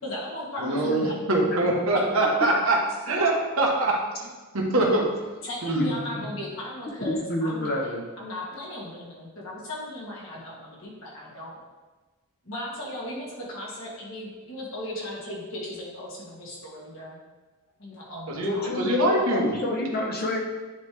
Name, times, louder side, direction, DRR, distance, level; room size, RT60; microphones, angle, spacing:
voice 1, 0.0-1.1 5.4-11.6 12.4-17.2 17.8-18.9, left 1 dB, 60° left, -5 dB, 1.9 m, -37 dB
voice 2, 0.6-2.8 3.1-3.9 4.2-4.3 4.5-5.0 5.6-5.9 18.3-18.5 18.8-19.5, right 2 dB, 70° right, -2 dB, 1.2 m, -23 dB
voice 3, 5.7-6.3 7.0-8.0 18.4-20.4, left 2 dB, 45° left, 0 dB, 1.0 m, -28 dB
9.2 x 3.2 x 3.4 m, 1.3 s
head